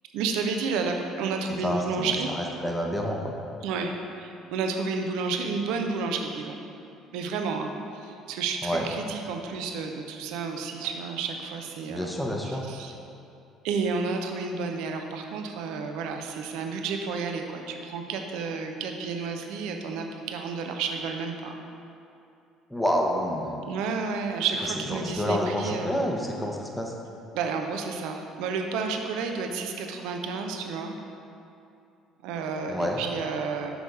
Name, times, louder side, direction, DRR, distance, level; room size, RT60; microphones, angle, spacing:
voice 1, 0.1-2.3 3.6-6.5 7.1-12.1 12.4-12.9 13.6-21.6 23.7-25.9 27.3-31.0 32.2-33.7, right 4 dB, 65° right, 4 dB, 0.6 m, -31 dB
voice 2, 1.6-3.3 8.6-8.8 11.9-12.6 22.7-23.5 24.9-26.9 32.7-33.0, equal, 5° left, 0 dB, 1.1 m, -28 dB
6.3 x 5.2 x 4.7 m, 2.7 s
figure-of-eight pair, 55°, 0 cm